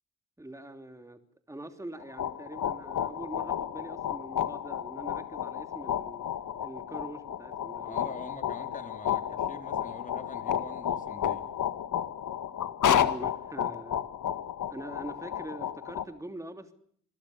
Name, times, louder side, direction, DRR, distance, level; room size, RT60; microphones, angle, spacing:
voice 1, 0.4-1.2 1.5-6.2 6.6-8.2 12.9-14.0 14.7-16.7, right 1 dB, 10° right, 7 dB, 3.1 m, -43 dB
sound 1, 2.0-16.0, left 9 dB, 70° left, 1.9 m, -32 dB
voice 2, 7.9-11.4, left 3 dB, 25° left, 7 dB, 4.2 m, -44 dB
29.5 x 21.5 x 6.7 m, 0.63 s
cardioid pair, 100°, 32 cm